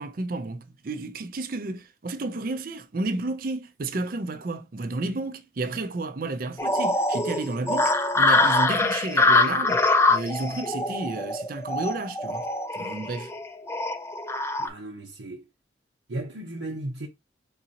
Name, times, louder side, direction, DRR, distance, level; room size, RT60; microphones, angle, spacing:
voice 1, 0.0-12.5 12.7-13.3, right 2 dB, 45° right, 0.5 m, -32 dB
sound 1, 6.6-14.7, left 2 dB, 15° left, 0.3 m, -24 dB
voice 2, 14.6-15.5 16.1-17.1, right 1 dB, 80° right, 0.8 m, -35 dB
3.9 x 3.9 x 2.8 m
head